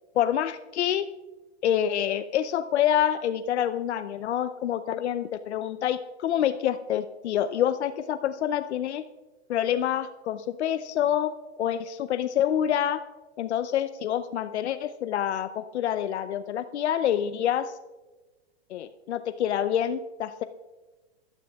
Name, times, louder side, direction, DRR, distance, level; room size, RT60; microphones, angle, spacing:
voice 1, 0.1-1.0 1.6-9.0 9.5-13.0 13.4-17.7 18.7-20.4, left 10 dB, 80° left, 10 dB, 0.6 m, -27 dB
20.0 x 12.5 x 2.3 m, 1.2 s
hypercardioid pair, 160°, 33 cm